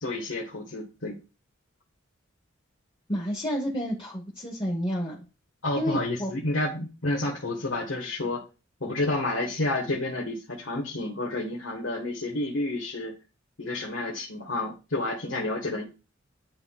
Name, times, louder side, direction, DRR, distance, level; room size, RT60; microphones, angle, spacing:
voice 1, 0.0-1.2 5.6-8.4 8.8-13.1 13.6-15.8, left 2 dB, 70° left, -3 dB, 1.5 m, -30 dB
voice 2, 3.1-5.2 5.8-6.3, equal, 25° left, -2 dB, 1.1 m, -30 dB
10.5 x 3.8 x 2.3 m, 0.30 s
head